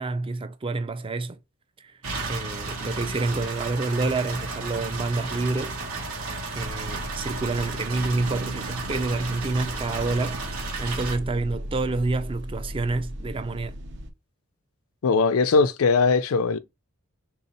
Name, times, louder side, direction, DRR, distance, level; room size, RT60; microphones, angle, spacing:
voice 1, 0.0-1.4 1.8-2.0 2.3-5.8 6.5-10.4 10.8-13.7, right 3 dB, 25° right, 0.4 m, -28 dB
sound 1, 2.0-11.2, right 3 dB, 85° right, 1.2 m, -33 dB
sound 2, 6.6-14.1, equal, 60° right, 0.9 m, -37 dB
voice 2, 15.0-16.6, left 4 dB, 80° left, 0.4 m, -20 dB
3.6 x 2.8 x 4.1 m
head